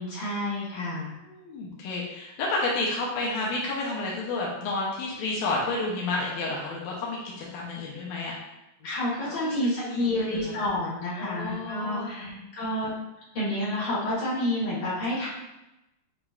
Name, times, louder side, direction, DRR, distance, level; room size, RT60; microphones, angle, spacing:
voice 1, 0.0-1.1 8.8-12.9 13.3-15.3, left 1 dB, 55° left, -8 dB, 1.7 m, -29 dB
voice 2, 1.2-8.3 9.4-9.5 9.9-10.5 11.2-12.4, left 2 dB, 85° left, -4 dB, 1.6 m, -31 dB
6.7 x 3.0 x 2.4 m, 0.94 s
omnidirectional pair, 4.1 m